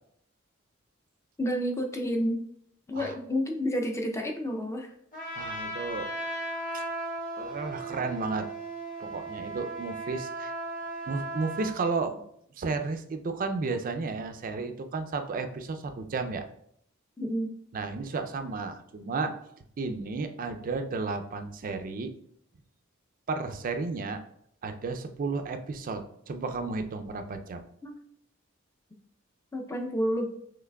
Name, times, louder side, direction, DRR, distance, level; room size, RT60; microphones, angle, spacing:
voice 1, 1.4-2.4 2.9-4.9 17.2-17.5 27.8-27.9 29.5-30.3, equal, 15° left, 2 dB, 0.5 m, -30 dB
Trumpet, 5.1-11.7, right 2 dB, 40° left, 1.6 m, -36 dB
voice 2, 5.4-6.1 6.7-6.8 7.4-8.5 9.0-10.5 11.1-12.2 12.6-16.4 17.7-19.3 19.8-22.1 23.3-24.2 24.6-27.7, right 4 dB, 40° right, 7 dB, 0.4 m, -33 dB
5.8 x 3.2 x 2.2 m, 0.71 s
head